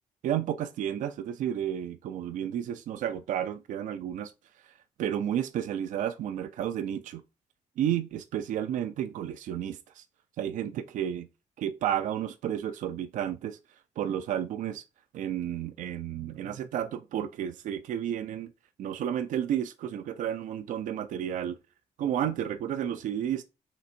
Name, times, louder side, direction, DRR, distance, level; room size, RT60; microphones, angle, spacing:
voice 1, 0.2-4.3 5.0-7.2 7.8-10.0 10.4-11.3 11.6-13.6 14.0-14.8 15.1-18.5 18.8-21.6 22.0-23.4, right 10 dB, 70° right, 0.5 m, -32 dB
5.7 x 3.3 x 2.6 m
cardioid pair, 155°, 13 cm